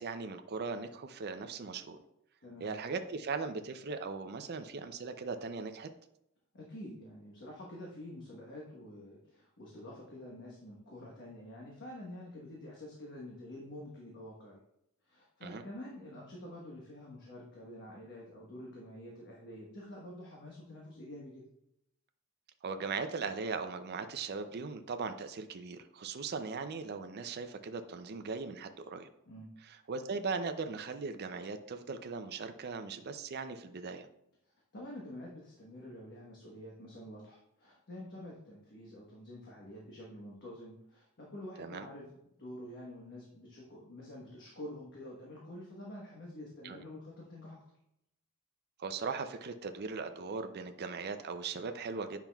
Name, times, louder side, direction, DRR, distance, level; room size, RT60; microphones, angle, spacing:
voice 1, 0.0-2.0 2.6-5.9 15.4-15.6 22.6-29.1 29.9-34.1 41.6-41.8 46.6-46.8 48.8-52.2, right 4 dB, 50° right, 8 dB, 0.5 m, -39 dB
voice 2, 2.4-2.7 6.5-14.6 15.0-21.4 29.3-29.5 34.7-47.6, left 1 dB, 55° left, -3 dB, 1.2 m, -48 dB
8.8 x 5.8 x 2.3 m, 0.80 s
head